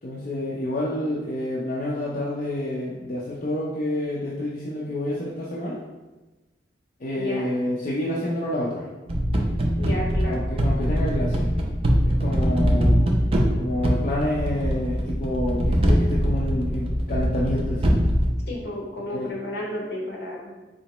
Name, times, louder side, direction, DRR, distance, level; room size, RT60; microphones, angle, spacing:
voice 1, 0.0-5.8 7.0-8.9 10.3-11.5 12.1-13.1 13.6-18.0 19.1-19.3, left 1 dB, 50° left, -6 dB, 0.5 m, -28 dB
voice 2, 7.1-7.5 9.8-10.5 18.5-20.5, left 1 dB, 65° left, -2 dB, 1.0 m, -32 dB
sound 1, 9.1-18.3, equal, 35° right, 0.5 m, -22 dB
4.0 x 2.9 x 3.0 m, 1.1 s
head